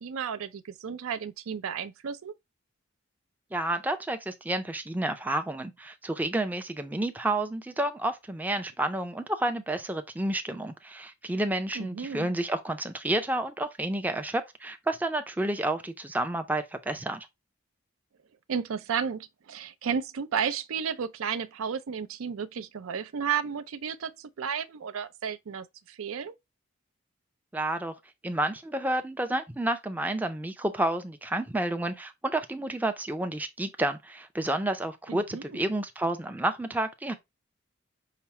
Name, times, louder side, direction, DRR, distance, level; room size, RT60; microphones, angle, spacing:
voice 1, 0.0-2.3 11.7-12.3 18.5-26.3 35.1-35.6, right 7 dB, 90° right, 0.4 m, -33 dB
voice 2, 3.5-17.3 27.5-27.9 28.2-37.1, right 1 dB, 10° right, 0.4 m, -30 dB
5.7 x 2.0 x 4.2 m
head